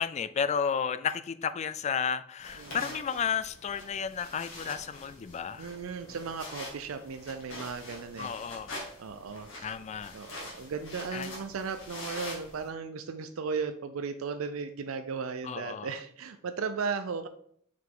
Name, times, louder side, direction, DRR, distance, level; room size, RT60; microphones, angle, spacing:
voice 1, 0.0-5.7 8.2-8.8 9.6-10.2 11.1-11.3 15.4-15.9, left 7 dB, 35° left, 0.3 m, -32 dB
sound 1, 2.4-12.7, left 1 dB, 65° left, 2.2 m, -45 dB
voice 2, 2.6-2.9 5.6-8.3 9.0-9.5 10.1-17.3, right 5 dB, 80° right, 0.5 m, -36 dB
5.7 x 4.8 x 3.8 m
head